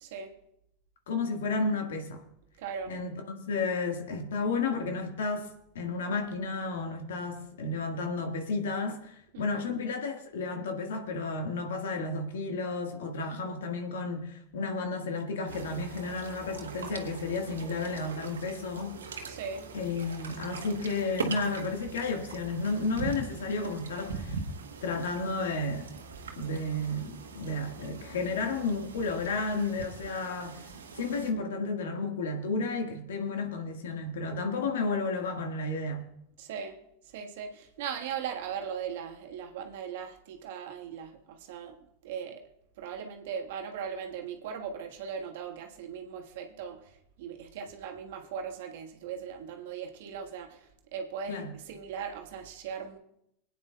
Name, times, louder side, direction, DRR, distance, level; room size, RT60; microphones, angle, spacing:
voice 1, 0.0-0.3 2.6-3.0 9.3-9.7 19.3-19.7 36.4-41.8 42.0-42.5 42.8-53.0, right 7 dB, 65° right, 1.4 m, -39 dB
voice 2, 1.1-2.2 2.8-19.0 19.7-24.4 24.8-25.9 26.4-30.7 31.0-36.1 51.3-51.5, left 3 dB, 75° left, 1.6 m, -32 dB
sound 1, 15.5-31.3, right 4 dB, 85° right, 1.1 m, -41 dB
25.5 x 9.1 x 2.3 m
hypercardioid pair, 90°, 0 cm